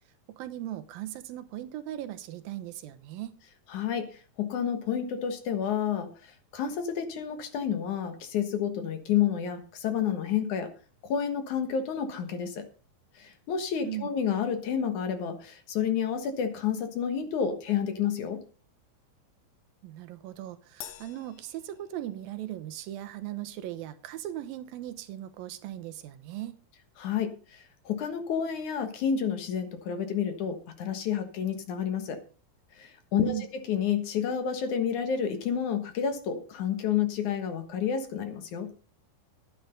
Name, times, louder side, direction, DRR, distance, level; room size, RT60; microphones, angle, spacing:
voice 1, 0.4-3.4 13.8-14.1 19.8-26.6 33.2-33.5, right 13 dB, 90° right, 10 dB, 2.7 m, -38 dB
voice 2, 3.7-10.7 11.0-12.7 13.2-18.4 27.0-32.2 32.8-33.3 33.7-38.7, left 8 dB, 65° left, 8 dB, 2.7 m, -30 dB
Crash cymbal, 20.8-22.5, left 11 dB, 80° left, 2.7 m, -48 dB
11.5 x 10.0 x 5.2 m, 0.39 s
omnidirectional pair, 4.1 m